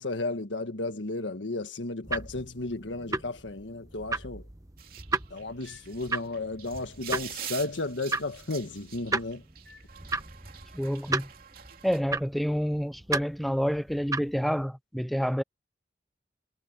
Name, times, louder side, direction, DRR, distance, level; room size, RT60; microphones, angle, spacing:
voice 1, 0.0-4.4 5.3-9.4, left 2 dB, 85° left, 1.6 m, -33 dB
sound 1, 2.0-14.6, right 3 dB, 20° right, 1.0 m, -36 dB
sound 2, 4.8-12.0, right 10 dB, 55° right, 3.0 m, -45 dB
voice 2, 10.7-11.3 11.8-15.4, equal, ahead, 0.5 m, -28 dB
head